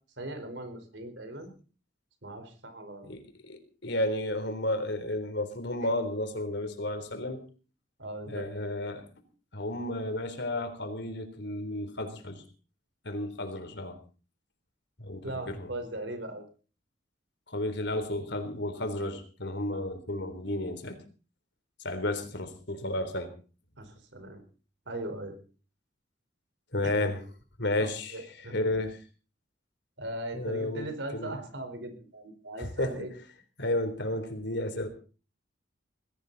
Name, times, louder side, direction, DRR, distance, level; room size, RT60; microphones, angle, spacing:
voice 1, 0.2-1.5 2.2-3.1 5.8-5.9 8.0-8.5 15.2-16.4 23.8-24.4 24.9-25.4 26.8-27.1 27.8-28.6 30.0-33.1, right 1 dB, 70° right, 8 dB, 4.7 m, -39 dB
voice 2, 3.0-7.4 8.3-9.1 9.5-12.4 13.0-14.0 15.0-15.7 17.5-21.0 21.8-23.3 26.7-27.2 27.6-28.1 28.5-29.0 30.3-31.3 32.6-32.9 33.6-34.9, left 1 dB, 65° left, 8 dB, 3.7 m, -32 dB
20.5 x 16.5 x 4.2 m, 0.38 s
head